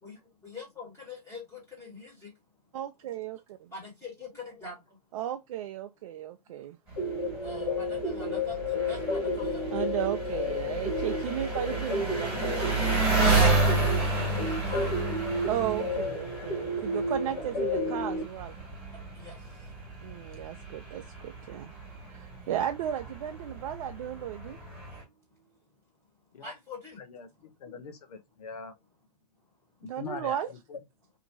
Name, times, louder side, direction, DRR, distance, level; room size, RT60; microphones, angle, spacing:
voice 1, 0.0-2.3 3.7-5.0 7.4-9.6 13.3-15.0 17.2-17.3 19.1-19.7 26.4-27.0, left 3 dB, 15° left, 1.5 m, -44 dB
voice 2, 2.7-3.6 5.1-6.8 9.7-13.1 13.3-13.4 15.5-18.5 20.0-21.7 22.1-24.6 29.9-30.5, right 11 dB, 55° right, 0.4 m, -35 dB
Engine, 6.9-25.0, right 3 dB, 10° right, 1.7 m, -31 dB
sound 1, 7.0-18.2, left 2 dB, 35° left, 1.2 m, -32 dB
voice 3, 27.0-28.7 29.8-30.8, left 5 dB, 70° left, 0.8 m, -42 dB
2.8 x 2.6 x 2.6 m
hypercardioid pair, 120°, 20 cm